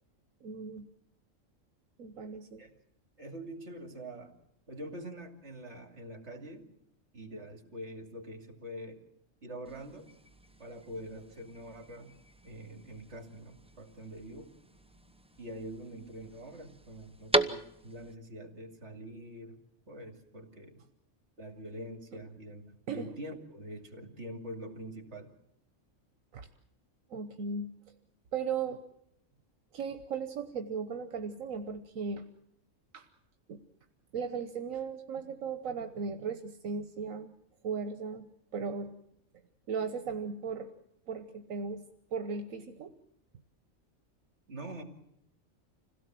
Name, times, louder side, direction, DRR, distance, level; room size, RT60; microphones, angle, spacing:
voice 1, 0.4-0.9 2.0-2.6 22.9-23.1 26.3-26.5 27.1-27.9 28.3-28.8 29.7-32.2 32.9-33.1 33.5-33.6 34.1-37.3 37.6-38.9 39.7-40.7 41.1-41.8 42.1-42.9, right 5 dB, 85° right, 8 dB, 1.5 m, -37 dB
voice 2, 3.2-4.3 4.7-6.6 7.1-9.0 9.4-10.1 10.6-12.1 12.4-14.5 15.4-19.6 19.9-20.8 21.4-22.6 22.9-25.3 44.5-44.8, right 1 dB, 55° right, 6 dB, 3.0 m, -44 dB
sound 1, 9.6-18.1, right 2 dB, 5° right, 0.7 m, -38 dB
26.5 x 17.0 x 7.6 m, 0.76 s
omnidirectional pair, 1.4 m